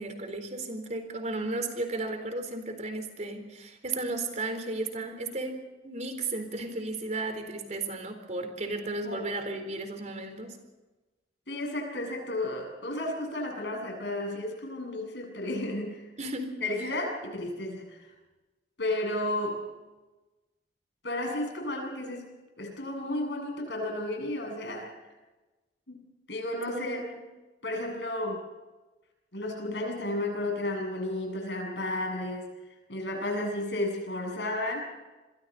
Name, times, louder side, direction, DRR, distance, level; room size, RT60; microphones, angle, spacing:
voice 1, 0.0-10.6 16.2-16.9 26.7-26.9, right 2 dB, 40° right, 6 dB, 4.1 m, -34 dB
voice 2, 11.5-16.1 16.6-18.1 18.8-19.7 21.0-22.3 22.6-24.9 25.9-27.1 27.6-28.5 29.3-32.5 32.9-34.8, left 1 dB, 75° left, 2 dB, 7.7 m, -33 dB
27.5 x 22.5 x 4.3 m, 1.2 s
head